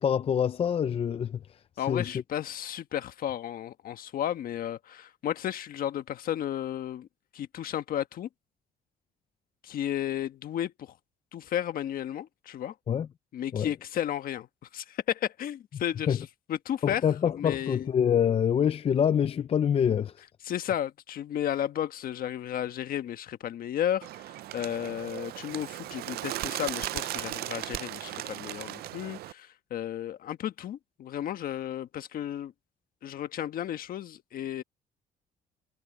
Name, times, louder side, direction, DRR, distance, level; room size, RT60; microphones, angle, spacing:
voice 1, 0.0-2.1 12.9-13.1 13.5-13.7 16.1-16.2 16.8-20.2, left 8 dB, 35° left, 0.5 m, -26 dB
voice 2, 1.8-7.1 7.3-8.3 9.6-10.9 11.3-12.7 13.3-14.5 14.7-17.0 17.4-17.9 20.4-32.5 33.0-34.6, left 11 dB, 60° left, 1.4 m, -33 dB
Bird, 24.0-29.3, right 15 dB, 65° right, 0.5 m, -37 dB
cardioid pair, 110°, 17 cm